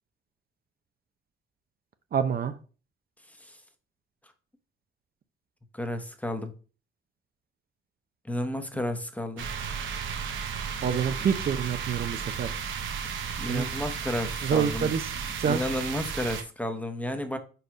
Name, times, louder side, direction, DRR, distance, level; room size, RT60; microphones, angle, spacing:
voice 1, 2.1-2.5 10.8-12.5 13.5-13.7 14.4-15.0 15.4-15.6, right 7 dB, 50° right, 0.7 m, -27 dB
voice 2, 5.7-6.5 8.2-9.5 13.4-14.9 15.4-17.4, left 1 dB, 5° left, 0.9 m, -32 dB
sound 1, 9.4-16.4, right 6 dB, 80° right, 1.0 m, -34 dB
4.9 x 4.7 x 4.7 m
cardioid pair, 90°, 20 cm